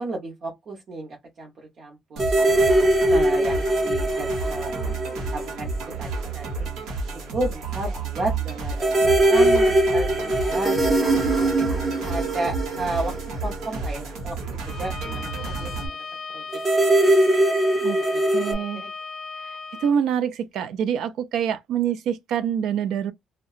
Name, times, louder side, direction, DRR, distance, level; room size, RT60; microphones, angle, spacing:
voice 1, 0.0-1.5 1.8-2.6 3.1-6.7 7.3-11.7 12.0-13.1 13.4-16.0 16.3-16.4 16.8-17.5 17.9-18.2 18.8-18.9, right 2 dB, 45° right, 0.7 m, -33 dB
sound 1, 2.2-5.9 6.2-6.3 8.8-14.2 16.5-18.5, right 1 dB, 15° right, 0.6 m, -21 dB
sound 2, 2.2-15.9, right 3 dB, 85° right, 0.9 m, -31 dB
Bowed string instrument, 14.6-19.9, left 4 dB, 50° left, 0.6 m, -37 dB
voice 2, 18.3-18.8 19.4-23.1, right 8 dB, 70° right, 0.4 m, -26 dB
2.7 x 2.2 x 2.3 m
cardioid pair, 165°, 0 cm